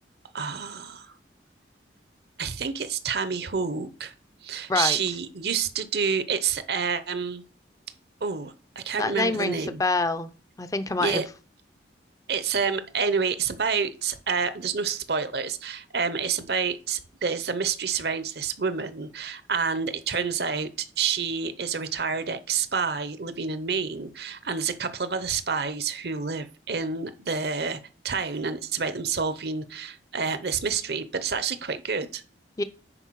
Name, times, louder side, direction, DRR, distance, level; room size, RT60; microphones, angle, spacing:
voice 1, 0.3-1.1 2.4-4.1 4.4-7.4 8.2-9.8 11.0-11.3 12.3-27.8 28.0-32.2, right 5 dB, 60° right, 0.8 m, -28 dB
voice 2, 9.0-10.3 10.6-11.2 32.6-32.7, left 3 dB, 20° left, 0.5 m, -26 dB
10.0 x 4.4 x 4.7 m
head